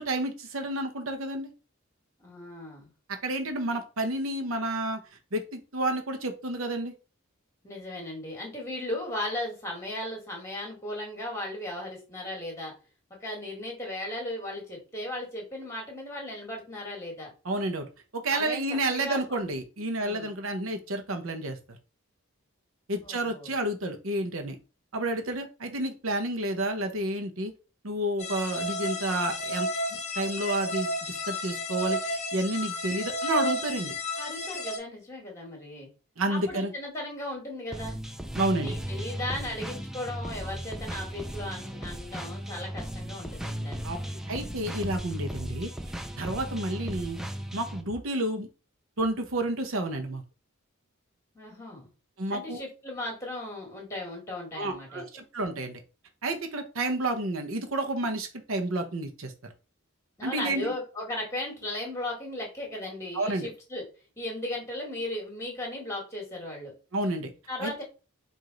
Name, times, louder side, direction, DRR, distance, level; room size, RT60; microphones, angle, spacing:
voice 1, 0.0-1.5 3.2-5.0 5.3-6.9 17.4-17.9 18.1-21.6 22.9-24.6 24.9-27.5 27.8-29.7 30.2-33.9 36.2-36.7 38.3-38.7 43.8-44.0 44.3-45.7 46.2-47.2 47.5-48.5 49.0-50.2 52.2-52.6 54.6-55.8 56.2-59.5 60.2-60.7 63.1-63.5 66.9-67.3 67.6-67.7, right 1 dB, 70° right, 5 dB, 0.9 m, -30 dB
voice 2, 2.2-2.9 7.6-12.7 13.1-17.3 18.3-19.4 20.0-20.3 23.0-23.5 34.2-35.9 36.3-38.0 38.5-43.8 51.3-51.9 52.3-55.0 60.2-63.8 64.2-66.7 67.5-67.8, left 1 dB, 15° left, 0 dB, 1.5 m, -36 dB
sound 1, 28.2-34.8, left 1 dB, 30° left, 0.7 m, -32 dB
sound 2, 37.7-47.8, equal, ahead, 0.4 m, -36 dB
4.8 x 2.7 x 3.8 m, 0.33 s
head